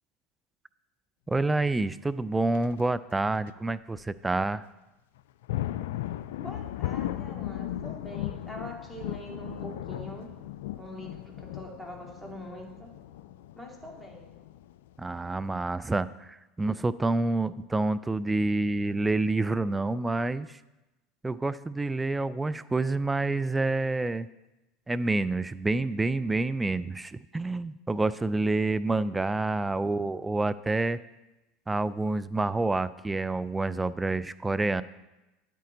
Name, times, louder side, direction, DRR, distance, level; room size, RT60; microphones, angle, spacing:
voice 1, 1.3-4.6 15.0-20.6 21.2-24.3 24.9-31.0 31.7-34.8, right 2 dB, 15° right, 15 dB, 0.4 m, -28 dB
sound 1, 2.5-2.8 3.5-3.6 3.9-4.0 5.2-15.5, left 13 dB, 75° left, 0.3 m, -37 dB
voice 2, 6.4-10.5 10.8-12.9 13.6-14.3, equal, 5° left, -1 dB, 2.5 m, -43 dB
9.4 x 8.4 x 3.9 m, 1.0 s
hypercardioid pair, 85°, 0 cm